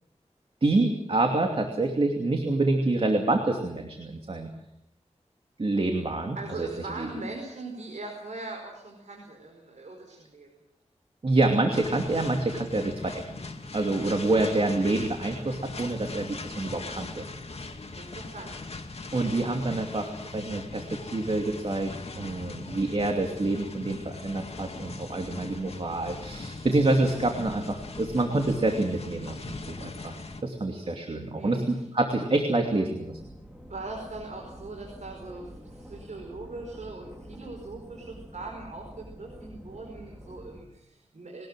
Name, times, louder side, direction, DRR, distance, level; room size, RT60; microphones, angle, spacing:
voice 1, 0.6-4.5 5.6-6.7 7.0-7.1 11.2-13.2 13.7-17.3 19.1-21.9 22.1-33.1, right 2 dB, 50° right, 3 dB, 2.7 m, -27 dB
voice 2, 6.4-10.5 18.0-18.6 31.3-31.8 33.7-41.5, right 2 dB, 75° right, 1 dB, 5.1 m, -40 dB
sound 1, 11.7-30.4, left 3 dB, 55° left, 2.4 m, -40 dB
sound 2, 33.0-40.6, equal, 10° right, 4.0 m, -47 dB
22.0 x 19.5 x 7.6 m, 0.86 s
wide cardioid pair, 90°, 12 cm